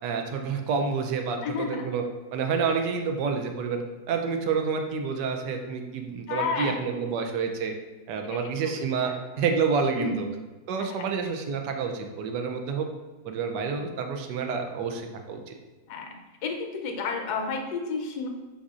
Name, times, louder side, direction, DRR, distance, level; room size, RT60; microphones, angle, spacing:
voice 1, 0.0-2.0 2.3-7.7 8.1-10.3 10.7-12.9 13.2-15.5, right 5 dB, 85° right, 4 dB, 1.2 m, -29 dB
voice 2, 1.4-1.9 6.3-6.8 8.3-8.4 9.0-9.1 9.9-10.2 10.8-11.0 15.9-18.3, left 4 dB, 75° left, 3 dB, 1.2 m, -31 dB
4.7 x 4.0 x 2.4 m, 1.2 s
omnidirectional pair, 1.8 m